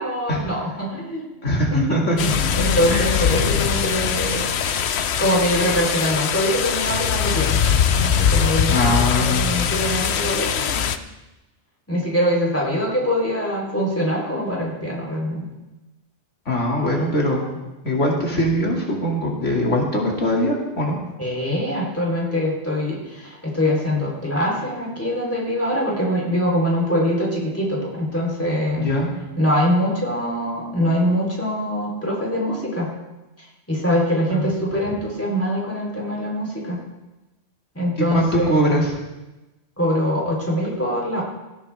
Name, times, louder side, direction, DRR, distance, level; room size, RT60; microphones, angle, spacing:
voice 1, 0.0-1.3 1.7-4.5 5.2-7.6 8.0-10.9 11.9-15.4 21.2-28.9 29.4-32.9 33.7-36.8 37.8-38.9 39.8-41.2, equal, 10° left, -3 dB, 3.8 m, -23 dB
voice 2, 1.4-2.2 2.9-3.1 8.7-9.5 16.5-17.6 17.8-21.0 28.8-29.1 34.3-34.5 38.1-38.9, equal, 85° left, -2 dB, 3.0 m, -21 dB
sound 1, 2.2-11.0, left 7 dB, 65° left, 1.0 m, -21 dB
17.5 x 14.5 x 3.5 m, 1.1 s
omnidirectional pair, 1.2 m